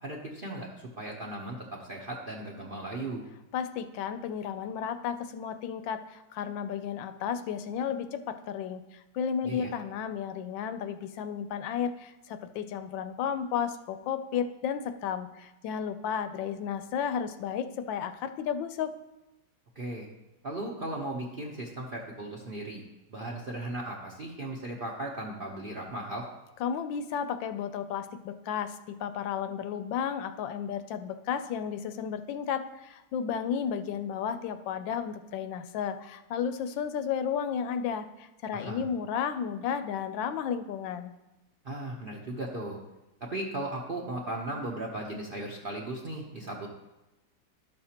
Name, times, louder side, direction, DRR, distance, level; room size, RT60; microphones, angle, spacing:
voice 1, 0.0-3.2 9.4-9.7 19.8-20.1 20.4-22.8 23.1-26.3 38.5-38.9 41.6-42.8 43.3-46.7, right 1 dB, 50° right, -1 dB, 0.6 m, -37 dB
voice 2, 3.5-18.9 26.6-41.1, left 7 dB, 85° left, 10 dB, 1.3 m, -33 dB
12.0 x 6.5 x 2.9 m, 0.99 s
omnidirectional pair, 2.0 m